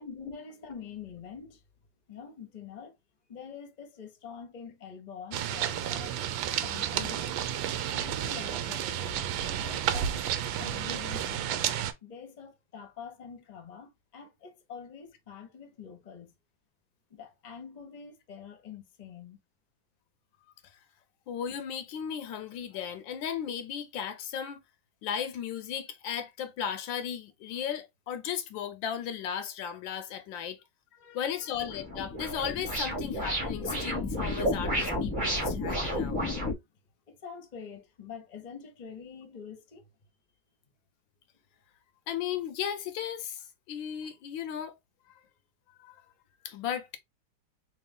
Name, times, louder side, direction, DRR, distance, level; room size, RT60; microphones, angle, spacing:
voice 1, 0.0-1.6 2.1-3.0 3.3-6.1 6.6-7.4 7.7-11.7 12.0-16.3 17.1-19.4 30.4-30.5 30.9-31.5 37.1-39.9, left 6 dB, 35° left, 0.7 m, -45 dB
sound 1, 5.3-11.9, right 10 dB, 80° right, 1.3 m, -31 dB
voice 2, 21.3-24.6 25.0-30.6 31.1-36.2 42.1-44.7 45.8-46.0 46.4-47.0, left 8 dB, 80° left, 1.3 m, -35 dB
sound 2, 31.5-36.5, left 1 dB, 20° right, 1.2 m, -31 dB
3.3 x 3.0 x 3.5 m
omnidirectional pair, 2.1 m